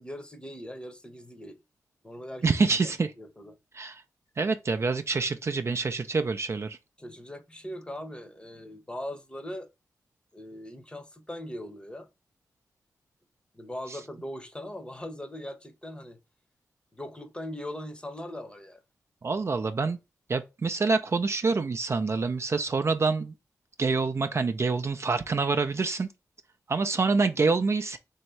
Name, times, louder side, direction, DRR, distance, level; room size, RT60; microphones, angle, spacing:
voice 1, 0.0-1.6 2.0-2.4 2.8-2.9 3.2-3.6 7.0-9.7 10.3-12.1 13.5-16.2 16.9-18.8, left 1 dB, 15° left, 0.8 m, -40 dB
voice 2, 2.4-3.1 3.7-4.0 4.4-6.8 19.2-20.0 20.3-23.3 23.8-26.1 26.7-28.0, right 4 dB, 40° right, 0.4 m, -26 dB
3.0 x 2.7 x 4.4 m
cardioid pair, 55°, 7 cm